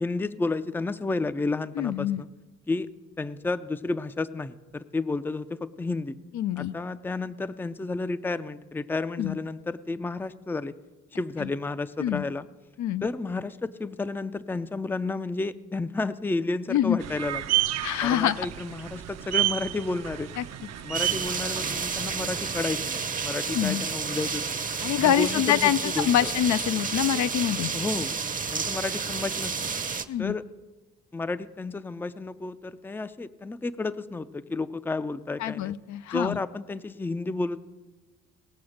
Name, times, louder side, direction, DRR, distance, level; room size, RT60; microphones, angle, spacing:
voice 1, 0.0-2.3 2.7-2.9 3.2-6.2 6.6-10.7 11.1-12.5 13.0-17.6 18.0-20.3 20.8-24.6 25.0-26.3 27.7-28.2 28.5-29.8 30.2-30.4 31.1-35.7 36.1-37.6, left 3 dB, 5° left, 14 dB, 0.4 m, -31 dB
voice 2, 1.8-2.2 6.3-6.7 9.2-9.4 11.4-11.5 12.0-12.2 12.8-13.1 16.7-17.0 17.8-18.5 20.4-20.5 23.5-23.9 24.8-27.7 30.1-30.4 35.4-36.4, left 11 dB, 70° left, 13 dB, 0.5 m, -25 dB
sound 1, 17.0-22.5, right 14 dB, 60° right, 0.7 m, -31 dB
sound 2, 20.9-30.1, right 5 dB, 25° right, 0.8 m, -31 dB
19.0 x 6.9 x 6.4 m, 1.2 s
cardioid pair, 90°, 30 cm